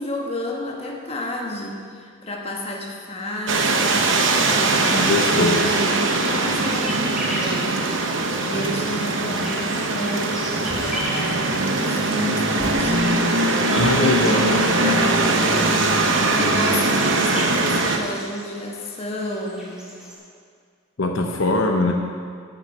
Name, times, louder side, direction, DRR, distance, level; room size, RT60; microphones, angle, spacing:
voice 1, 0.0-4.0 4.6-7.8 8.4-13.0 13.7-19.8, left 1 dB, 30° left, -1 dB, 1.3 m, -31 dB
sound 1, 3.5-18.0, right 2 dB, 60° right, 0.8 m, -21 dB
voice 2, 4.8-5.6 9.2-9.5 13.7-14.6 21.0-21.9, left 2 dB, 70° left, 2 dB, 0.8 m, -22 dB
sound 2, 5.4-20.2, equal, 5° right, 1.8 m, -37 dB
sound 3, 10.7-11.4 12.4-13.4 13.7-14.4, equal, 30° right, 1.8 m, -37 dB
9.1 x 7.5 x 6.5 m, 2.1 s
head